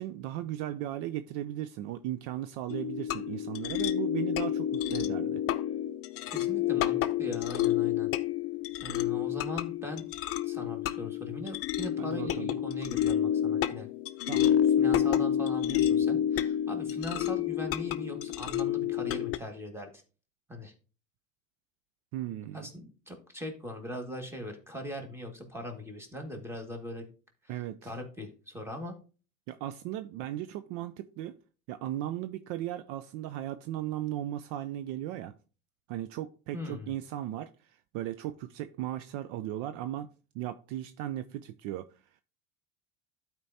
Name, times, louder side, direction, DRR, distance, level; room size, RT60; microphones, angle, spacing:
voice 1, 0.0-5.4 12.0-12.5 14.3-14.6 22.1-22.7 27.5-27.9 29.5-31.4 31.7-35.3 35.9-40.1 40.3-41.9, right 13 dB, 60° right, 0.5 m, -36 dB
sound 1, 2.7-19.4, left 10 dB, 40° left, 0.6 m, -29 dB
voice 2, 6.3-8.1 8.8-10.0 10.4-13.9 14.8-19.9 20.5-20.7 22.5-27.0 27.4-29.0 36.5-36.9, left 1 dB, 5° right, 1.9 m, -40 dB
12.5 x 4.5 x 2.7 m
hypercardioid pair, 90°, 37 cm